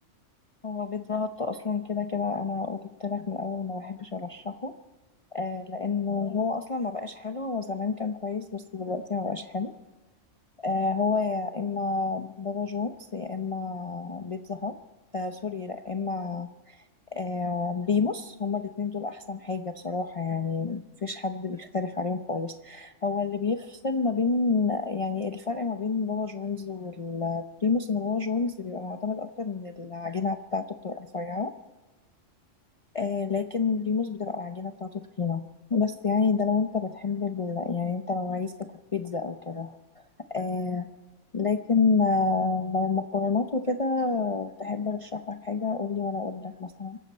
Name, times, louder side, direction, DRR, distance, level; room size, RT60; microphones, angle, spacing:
voice 1, 0.6-4.7 5.3-9.7 10.6-14.7 15.1-16.8 17.1-31.5 32.9-35.4 35.7-38.5 38.9-40.0 40.3-40.9 41.3-47.0, left 4 dB, 35° left, 6 dB, 0.6 m, -29 dB
25.0 x 13.5 x 4.3 m, 1.1 s
omnidirectional pair, 1.3 m